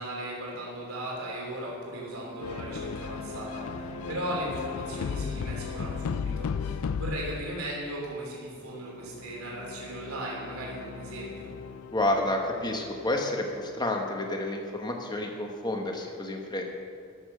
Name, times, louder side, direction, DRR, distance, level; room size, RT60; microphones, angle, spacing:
voice 1, 0.0-11.5, right 1 dB, 75° right, -4 dB, 3.0 m, -37 dB
Brass instrument, 2.1-6.4, equal, 25° right, 1.0 m, -44 dB
sound 1, 2.4-7.6 8.8-13.7, left 6 dB, 70° left, 0.4 m, -36 dB
voice 2, 11.9-16.8, left 1 dB, 20° left, 2 dB, 1.3 m, -30 dB
13.5 x 7.1 x 6.6 m, 2.3 s
head